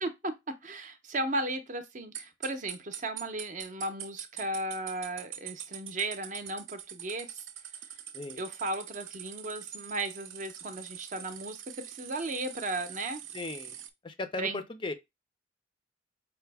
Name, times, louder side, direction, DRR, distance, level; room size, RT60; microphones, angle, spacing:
voice 1, 0.0-7.4 8.3-13.2 14.4-14.6, right 2 dB, 40° right, 0.6 m, -35 dB
sound 1, 2.1-13.9, right 10 dB, 85° right, 0.5 m, -44 dB
voice 2, 13.3-13.8 14.0-14.9, left 3 dB, 25° left, 0.4 m, -37 dB
5.6 x 2.0 x 3.3 m
head